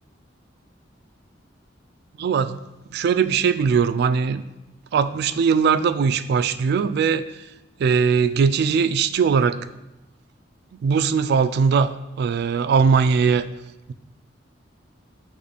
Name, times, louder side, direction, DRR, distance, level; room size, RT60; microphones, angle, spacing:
voice 1, 2.2-2.6 2.9-4.4 4.9-7.2 7.8-9.6 10.8-13.4, right 6 dB, 60° right, 12 dB, 0.3 m, -20 dB
8.2 x 3.1 x 4.1 m, 0.95 s
head